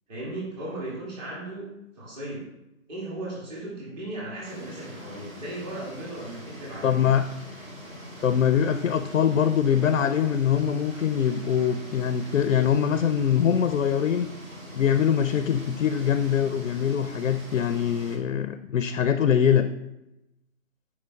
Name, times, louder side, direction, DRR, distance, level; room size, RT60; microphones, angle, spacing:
voice 1, 0.1-2.5 2.9-7.0, right 1 dB, 30° right, -5 dB, 1.9 m, -36 dB
sound 1, 4.4-18.2, equal, 80° right, 1.8 m, -43 dB
voice 2, 6.8-7.2 8.2-14.3 14.7-19.7, left 8 dB, 65° left, 9 dB, 0.5 m, -23 dB
9.4 x 5.0 x 2.2 m, 0.91 s
figure-of-eight pair, 140°, 41 cm